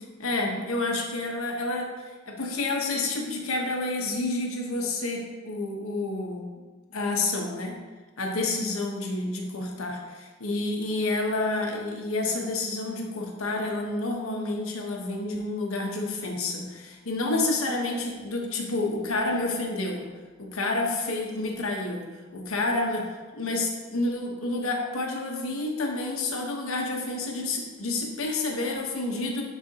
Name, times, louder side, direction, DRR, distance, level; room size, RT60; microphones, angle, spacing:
voice 1, 0.2-1.9 2.3-6.4 6.9-7.8 8.2-20.1 20.4-23.1 23.3-29.4, left 2 dB, 80° left, 1 dB, 1.1 m, -29 dB
10.0 x 4.1 x 2.8 m, 1.3 s
head